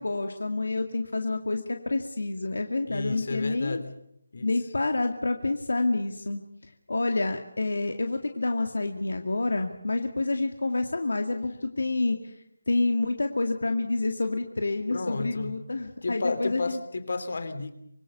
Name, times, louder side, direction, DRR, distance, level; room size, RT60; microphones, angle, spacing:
voice 1, 0.0-3.8 4.4-6.4 6.9-12.3 12.7-16.8, left 2 dB, 80° left, 5 dB, 2.1 m, -28 dB
voice 2, 2.9-3.9 4.3-4.5 14.9-15.5 16.0-17.7, left 3 dB, 55° left, 11 dB, 3.2 m, -32 dB
26.0 x 21.0 x 6.9 m, 0.75 s
figure-of-eight pair, 170°, 0 cm